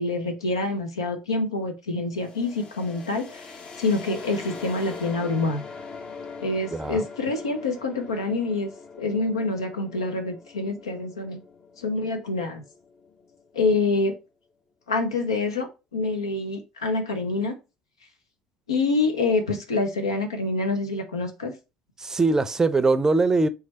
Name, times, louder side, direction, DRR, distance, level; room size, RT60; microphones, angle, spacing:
voice 1, 0.0-3.4 3.8-5.6 6.4-8.7 9.0-11.4 11.8-12.6 13.5-14.1 14.9-17.5 18.7-21.5, left 3 dB, 90° left, 0.7 m, -26 dB
sound 1, 2.1-13.8, left 4 dB, 40° left, 0.8 m, -42 dB
voice 2, 6.7-7.0 22.0-23.5, right 3 dB, 20° right, 0.5 m, -21 dB
3.5 x 3.3 x 4.1 m
hypercardioid pair, 65°, 3 cm